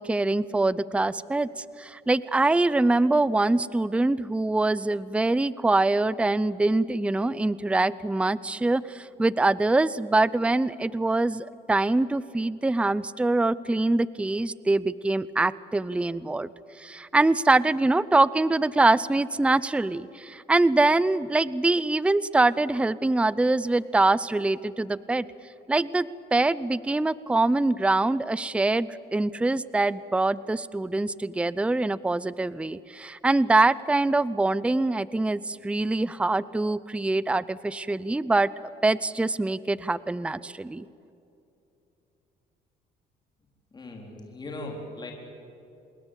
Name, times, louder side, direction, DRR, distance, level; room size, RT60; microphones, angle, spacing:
voice 1, 0.0-16.5 16.8-25.3 25.7-38.5 38.8-40.9, right 2 dB, 5° right, 18 dB, 0.6 m, -24 dB
voice 2, 43.7-45.1, left 2 dB, 25° left, 1 dB, 4.3 m, -38 dB
27.0 x 21.0 x 8.3 m, 2.8 s
cardioid pair, 110°, 17 cm